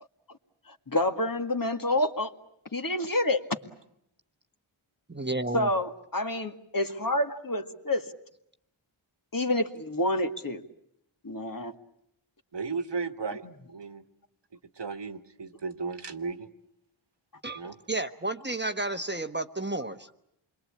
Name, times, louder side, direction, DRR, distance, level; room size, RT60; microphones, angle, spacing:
voice 1, 0.7-2.3 2.7-3.4 5.5-8.1 9.3-10.6 11.2-11.7 13.4-13.5, left 1 dB, 45° left, 6 dB, 2.0 m, -28 dB
voice 2, 5.1-5.7 17.4-17.6 17.9-20.2, right 2 dB, 20° right, 8 dB, 1.2 m, -32 dB
voice 3, 12.5-14.0 14.7-16.5 17.5-17.8, right 4 dB, 60° right, 9 dB, 1.7 m, -35 dB
28.0 x 22.5 x 8.7 m, 0.76 s
wide cardioid pair, 65°, 48 cm